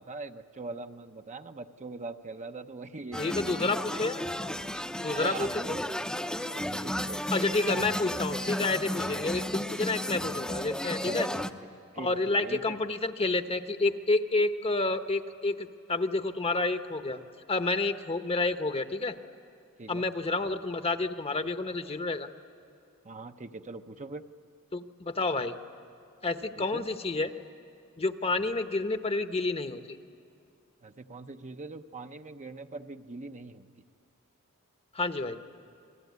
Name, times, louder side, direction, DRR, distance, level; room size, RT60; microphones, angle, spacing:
voice 1, 0.0-3.7 4.7-5.8 6.5-7.2 7.7-7.9 11.0-11.5 11.9-12.8 19.8-20.0 23.0-24.3 26.6-26.8 30.8-33.7, right 3 dB, 35° right, 7 dB, 0.8 m, -42 dB
sound 1, 3.1-11.5, equal, 5° left, 0.8 m, -33 dB
voice 2, 3.2-4.2 5.0-5.8 7.3-11.3 12.0-17.2 17.5-19.1 19.9-22.3 24.7-25.5 26.2-27.3 28.0-30.0 34.9-35.4, left 3 dB, 25° left, 8 dB, 1.0 m, -29 dB
29.5 x 21.0 x 9.5 m, 2.5 s
head